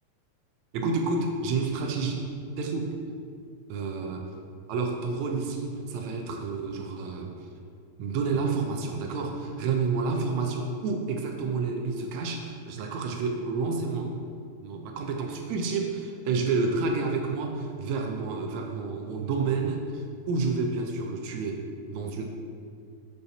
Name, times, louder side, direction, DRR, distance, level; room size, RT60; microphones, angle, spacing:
voice 1, 0.7-2.3 2.6-2.9 3.7-4.3 4.7-7.3 8.0-14.2 14.6-22.3, right 4 dB, 80° right, 3 dB, 1.9 m, -29 dB
7.0 x 5.5 x 4.0 m, 2.2 s
omnidirectional pair, 3.4 m